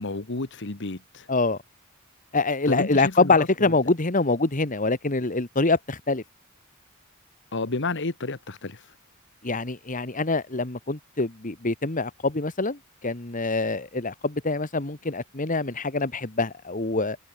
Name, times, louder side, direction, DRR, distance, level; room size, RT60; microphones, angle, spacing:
voice 1, 0.0-1.3 2.6-3.7 7.5-8.9, left 3 dB, 60° left, 1.5 m, -31 dB
voice 2, 2.3-6.2 9.4-17.2, left 3 dB, 40° left, 1.7 m, -25 dB
head